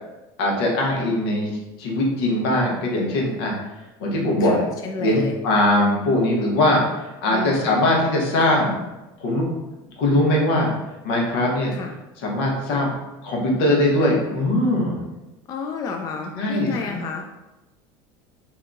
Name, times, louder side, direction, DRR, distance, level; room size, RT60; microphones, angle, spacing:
voice 1, 0.4-1.5 1.8-3.5 4.0-4.6 5.0-8.8 9.2-9.5 10.0-10.7 11.0-11.7 12.2-12.9 13.2-15.0 16.3-17.0, left 1 dB, 85° left, -2 dB, 1.0 m, -21 dB
voice 2, 4.4-5.3 7.3-7.9 11.7-11.9 15.5-17.2, left 5 dB, 30° left, 2 dB, 0.3 m, -31 dB
2.8 x 2.3 x 3.8 m, 1.0 s
supercardioid pair, 130°, 12 cm